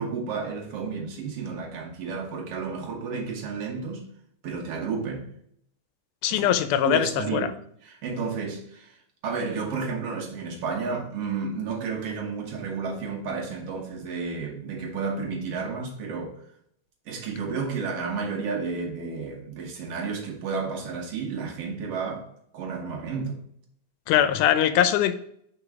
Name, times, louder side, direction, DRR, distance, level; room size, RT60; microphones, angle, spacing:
voice 1, 0.0-4.0 4.4-5.3 6.3-6.6 6.8-7.5 7.8-16.4 17.1-22.3 22.5-23.4 24.1-24.2, right 5 dB, 60° right, 1.8 m, -32 dB
voice 2, 6.2-7.5 24.1-25.1, left 10 dB, 80° left, 2.1 m, -22 dB
5.1 x 4.6 x 4.8 m
omnidirectional pair, 3.7 m